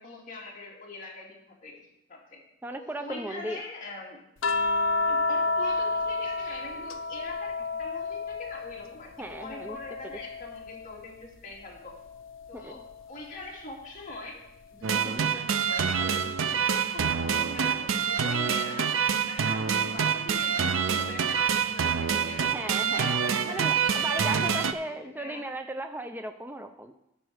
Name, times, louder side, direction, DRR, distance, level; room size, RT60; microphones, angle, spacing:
voice 1, 0.0-1.8 2.1-2.4 2.8-4.3 5.0-12.0 12.5-14.4 14.7-25.5, left 2 dB, 40° left, -3 dB, 2.4 m, -43 dB
voice 2, 2.6-3.6 9.2-9.8 12.5-12.7 15.0-15.3 22.5-23.2 23.4-26.9, right 1 dB, 10° right, 7 dB, 0.4 m, -36 dB
sound 1, 4.4-8.9 9.3-10.9 12.4-12.6, left 3 dB, 75° left, 0.8 m, -30 dB
sound 2, 14.8-24.7, right 7 dB, 80° right, 0.5 m, -26 dB
11.5 x 4.5 x 7.8 m, 0.83 s
head